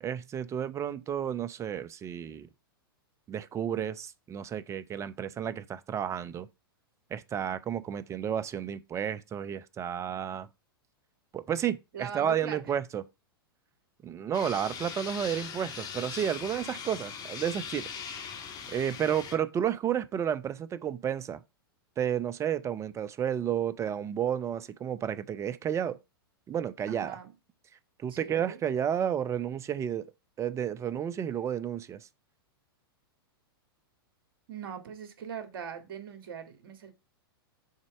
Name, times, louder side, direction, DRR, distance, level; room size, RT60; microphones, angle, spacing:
voice 1, 0.0-2.5 3.3-6.5 7.1-10.5 11.3-13.0 14.0-17.9 18.7-21.4 22.0-26.0 26.5-27.2 28.0-30.1 30.4-32.1, right 9 dB, 25° right, 0.7 m, -31 dB
voice 2, 11.9-12.7 26.9-27.3 28.1-28.6 34.5-36.9, right 7 dB, 60° right, 2.0 m, -41 dB
sound 1, 14.3-19.4, left 7 dB, 30° left, 1.6 m, -40 dB
6.6 x 4.1 x 5.9 m
hypercardioid pair, 105°, 13 cm